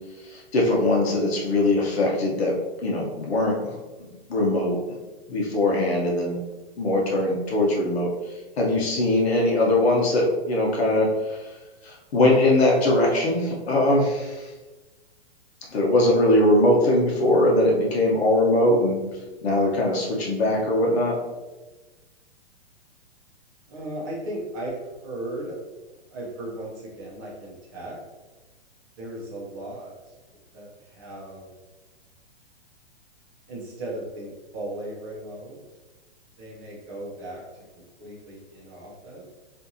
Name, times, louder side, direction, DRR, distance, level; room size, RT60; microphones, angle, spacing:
voice 1, 0.2-2.6 2.8-4.8 5.3-6.4 6.8-8.1 8.6-11.4 11.8-14.5 15.7-19.0 19.4-21.2, left 1 dB, 65° left, -2 dB, 0.9 m, -21 dB
voice 2, 23.7-25.6 26.1-28.0 29.0-29.9 30.5-31.5 33.5-35.6 36.4-39.2, right 1 dB, 20° right, -5 dB, 0.7 m, -36 dB
4.4 x 2.6 x 2.7 m, 1.2 s
hypercardioid pair, 170°, 34 cm